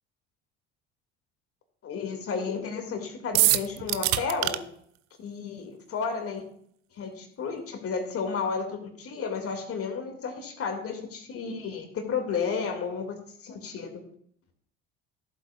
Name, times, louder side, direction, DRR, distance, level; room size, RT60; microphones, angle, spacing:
voice 1, 1.8-4.6 5.2-6.4 7.0-13.1 13.4-13.9, left 5 dB, 40° left, 4 dB, 2.1 m, -32 dB
sound 1, 3.3-4.6, right 17 dB, 50° right, 0.6 m, -23 dB
15.0 x 8.0 x 2.3 m, 0.65 s
figure-of-eight pair, 60°, 34 cm